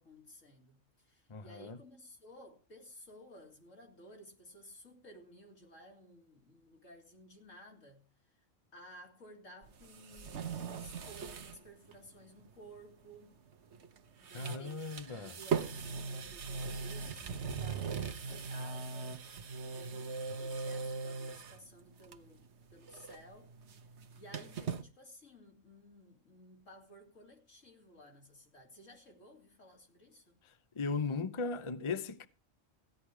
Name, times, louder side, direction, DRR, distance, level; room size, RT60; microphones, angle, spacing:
voice 1, 0.0-8.4 8.7-13.4 14.2-22.4 22.7-23.5 24.2-30.4, equal, 85° left, 3.6 m, -56 dB
voice 2, 1.3-1.8 14.3-15.4 30.7-32.3, left 4 dB, 30° left, 0.7 m, -37 dB
sound 1, 9.6-11.6 11.9-12.0 13.7-14.0 14.2-21.6 22.0-22.5 22.7-24.8, right 5 dB, 65° right, 1.2 m, -39 dB
15.5 x 10.0 x 4.8 m
omnidirectional pair, 1.3 m